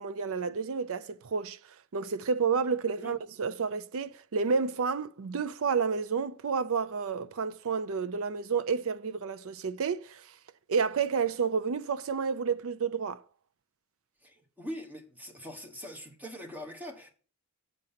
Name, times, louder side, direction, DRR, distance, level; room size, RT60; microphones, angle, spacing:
voice 1, 0.0-1.6 1.9-10.2 10.7-13.2, right 5 dB, 65° right, 0.5 m, -30 dB
voice 2, 14.2-17.1, equal, 10° right, 1.3 m, -42 dB
7.6 x 5.3 x 5.7 m
head